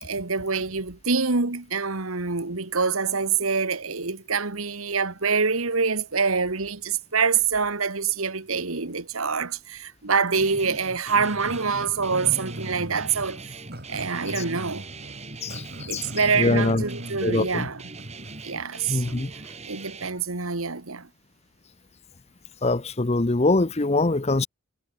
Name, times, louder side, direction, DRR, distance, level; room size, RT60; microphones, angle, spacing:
voice 1, 0.0-13.5 13.9-14.9 15.9-17.9 18.4-21.1, right 5 dB, 75° right, 1.8 m, -26 dB
Guitar, 10.3-20.1, right 3 dB, 30° right, 2.5 m, -41 dB
Growling, 11.1-18.5, right 1 dB, 45° right, 6.4 m, -39 dB
voice 2, 16.3-16.8 17.2-17.7 18.9-19.3 22.6-24.5, left 2 dB, 30° left, 0.8 m, -23 dB
head